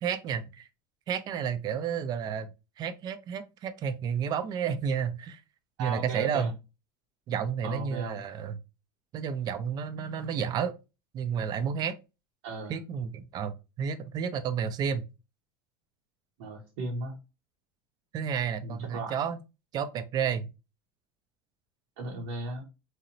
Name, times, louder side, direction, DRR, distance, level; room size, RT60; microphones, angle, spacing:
voice 1, 0.0-0.7 1.1-2.5 2.8-5.4 5.8-6.5 7.3-8.6 9.1-10.7 11.1-11.9 12.7-15.0 18.1-19.4 19.7-20.5, right 7 dB, 35° right, 0.3 m, -31 dB
voice 2, 5.8-6.5 7.6-8.2 12.4-12.8 16.4-17.2 18.6-19.2 22.0-22.6, right 2 dB, 70° right, 0.6 m, -36 dB
2.8 x 2.0 x 2.5 m
supercardioid pair, 125°, 12 cm